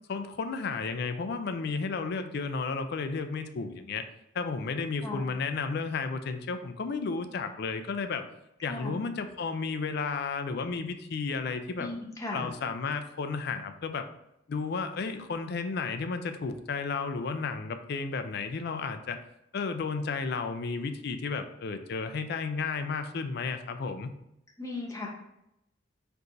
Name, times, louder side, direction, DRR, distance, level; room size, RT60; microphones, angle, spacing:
voice 1, 0.1-4.0 4.3-8.2 8.6-11.9 12.3-14.0 14.5-19.2 19.5-24.1, left 4 dB, 55° left, 8 dB, 0.4 m, -33 dB
voice 2, 11.8-12.5 24.6-25.1, left 2 dB, 15° left, -1 dB, 0.8 m, -36 dB
4.6 x 2.6 x 3.9 m, 0.83 s
head